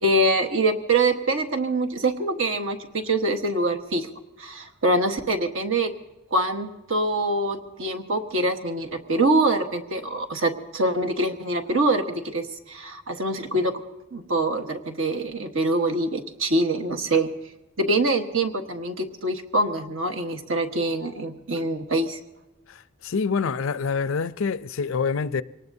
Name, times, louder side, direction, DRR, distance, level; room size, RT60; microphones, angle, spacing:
voice 1, 0.0-4.1 4.4-5.9 6.3-13.7 14.1-17.3 17.8-22.2, right 2 dB, 65° right, 1.3 m, -24 dB
voice 2, 23.0-25.4, left 5 dB, 70° left, 0.5 m, -26 dB
24.0 x 19.0 x 2.7 m
head